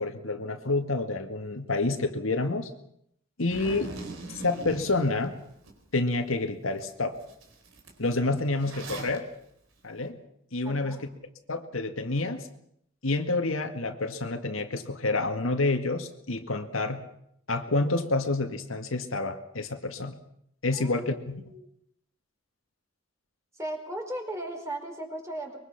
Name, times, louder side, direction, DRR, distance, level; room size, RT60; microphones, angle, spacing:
voice 1, 0.0-2.7 3.4-3.9 4.4-5.4 5.9-7.2 8.0-9.3 9.8-10.2 10.5-11.1 11.5-12.5 13.0-17.0 17.5-20.2 20.6-21.4, left 2 dB, 85° left, 5 dB, 2.0 m, -28 dB
Zipper (clothing), 3.5-5.7 6.2-6.3 6.8-6.9 7.1-9.2, right 3 dB, 80° right, 4.4 m, -41 dB
voice 2, 10.6-11.1 20.7-21.7 23.6-25.6, right 1 dB, 15° right, 2 dB, 4.6 m, -37 dB
24.0 x 23.0 x 5.9 m, 0.72 s
head